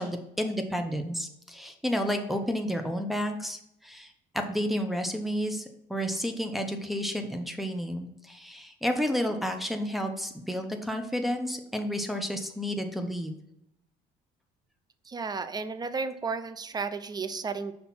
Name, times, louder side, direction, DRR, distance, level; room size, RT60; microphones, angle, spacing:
voice 1, 0.0-13.3, equal, ahead, 5 dB, 0.9 m, -31 dB
voice 2, 15.1-17.7, right 4 dB, 25° right, 11 dB, 0.6 m, -33 dB
5.7 x 4.3 x 5.7 m, 0.79 s
cardioid pair, 110°, 17 cm